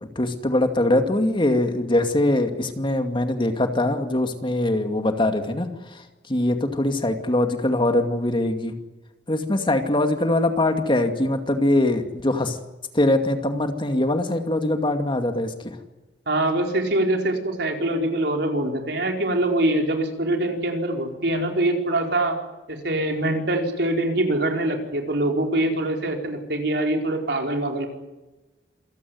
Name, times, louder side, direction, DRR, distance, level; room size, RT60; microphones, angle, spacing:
voice 1, 0.2-5.7 6.3-8.7 9.3-12.6 12.9-15.8, left 1 dB, 30° left, 6 dB, 2.3 m, -22 dB
voice 2, 16.3-22.4 22.7-27.9, right 1 dB, 70° right, 3 dB, 4.8 m, -24 dB
27.0 x 17.0 x 9.5 m, 1.1 s
head